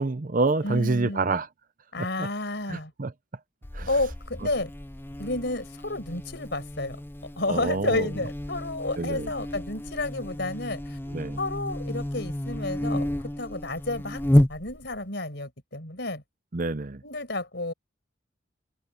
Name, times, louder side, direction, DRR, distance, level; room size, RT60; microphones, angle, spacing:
voice 1, 0.0-1.5 2.0-2.3 2.7-3.1 3.7-3.9 7.5-8.1 9.0-9.3 11.1-11.4 16.5-17.0, right 3 dB, 45° right, 0.7 m, -27 dB
voice 2, 0.6-1.4 1.9-2.9 3.9-4.7 5.2-7.0 7.4-11.0 11.4-13.1 13.4-14.2 14.5-16.2 17.0-17.7, left 2 dB, 60° left, 5.5 m, -31 dB
Buzz, 3.6-15.0, left 1 dB, 10° left, 0.5 m, -30 dB
head